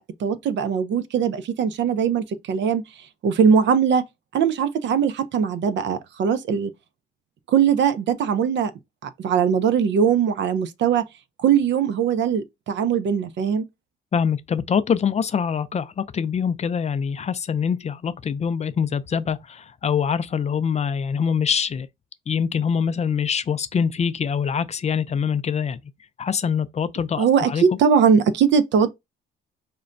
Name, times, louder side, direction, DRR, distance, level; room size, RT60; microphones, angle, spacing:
voice 1, 0.0-2.8 3.2-4.1 4.3-6.7 7.5-8.7 9.0-11.1 11.4-13.6 27.2-28.9, right 7 dB, 65° right, 0.5 m, -20 dB
voice 2, 14.1-21.9 22.3-25.8 26.2-27.6, left 7 dB, 35° left, 0.4 m, -24 dB
4.9 x 2.2 x 2.5 m
cardioid pair, 90°, 20 cm